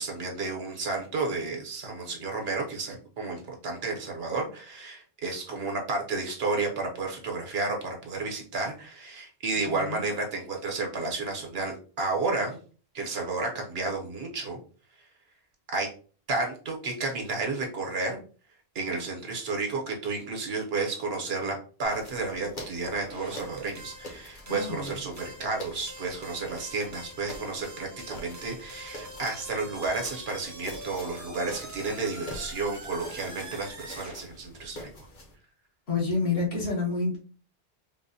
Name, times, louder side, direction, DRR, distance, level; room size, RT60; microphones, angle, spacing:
voice 1, 0.0-12.6 12.9-14.6 15.7-15.9 16.3-18.2 18.7-34.9, right 3 dB, 75° right, 1 dB, 1.1 m, -32 dB
voice 2, 9.6-10.1 24.5-25.0 35.9-37.2, left 4 dB, 70° left, -2 dB, 1.0 m, -29 dB
sound 1, 21.8-35.3, equal, 50° left, 0.9 m, -45 dB
sound 2, 23.1-34.2, right 1 dB, 20° right, 0.6 m, -45 dB
3.7 x 2.1 x 2.6 m, 0.40 s
omnidirectional pair, 1.0 m